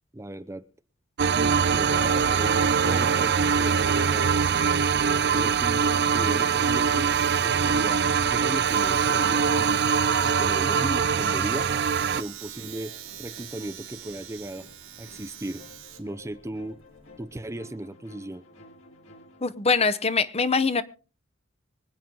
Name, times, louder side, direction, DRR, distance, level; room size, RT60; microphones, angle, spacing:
voice 1, 0.1-0.6 1.3-4.3 5.1-7.1 7.4-9.8 10.2-11.7 12.1-14.7 15.0-15.6 16.0-16.8 17.2-18.4, right 1 dB, 15° right, 0.6 m, -36 dB
sound 1, 1.2-12.2, right 6 dB, 55° right, 0.6 m, -23 dB
sound 2, 3.5-19.5, left 1 dB, 75° left, 4.6 m, -52 dB
Domestic sounds home sounds, 7.1-17.5, right 11 dB, 90° right, 3.1 m, -44 dB
voice 2, 19.4-20.8, left 4 dB, 30° left, 0.9 m, -23 dB
25.0 x 9.2 x 3.9 m
head